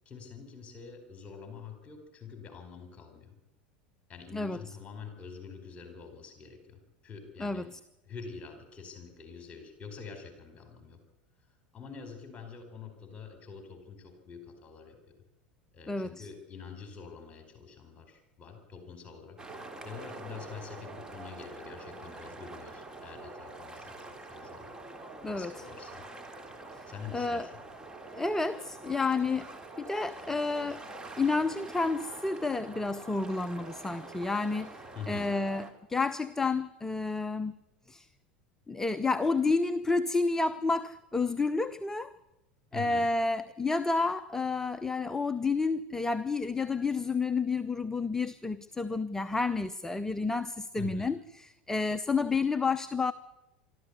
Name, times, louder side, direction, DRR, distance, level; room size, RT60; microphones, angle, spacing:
voice 1, 0.0-3.3 4.1-6.8 7.0-7.7 8.1-11.0 11.7-15.0 15.7-19.4 19.8-24.7 25.3-26.0 26.9-27.5 34.9-35.3 42.7-43.1 50.8-51.1, left 6 dB, 25° left, 7 dB, 4.7 m, -46 dB
voice 2, 4.3-4.8 7.4-7.8 15.9-16.3 25.2-25.5 27.1-27.5 28.1-29.5 29.8-30.8 31.2-34.8 35.1-37.5 37.9-38.1 38.7-42.1 42.7-53.1, left 3 dB, 10° left, 13 dB, 0.7 m, -30 dB
sound 1, 19.4-35.7, right 2 dB, 15° right, 3.2 m, -46 dB
25.0 x 13.5 x 8.2 m, 0.96 s
figure-of-eight pair, 80°, 5 cm